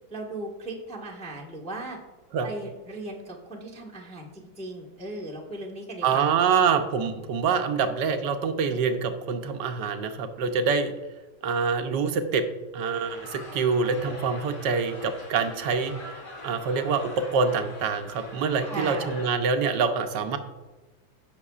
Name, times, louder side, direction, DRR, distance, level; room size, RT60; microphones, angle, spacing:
voice 1, 0.1-2.0 2.4-6.3 18.6-19.1, right 2 dB, 5° left, -3 dB, 1.0 m, -37 dB
voice 2, 6.0-10.9 11.4-12.5 12.7-15.9 16.4-20.4, right 5 dB, 70° right, 7 dB, 1.3 m, -25 dB
sound 1, 12.9-19.3, left 1 dB, 90° left, 3.8 m, -42 dB
16.0 x 6.3 x 2.4 m, 1.2 s
omnidirectional pair, 2.1 m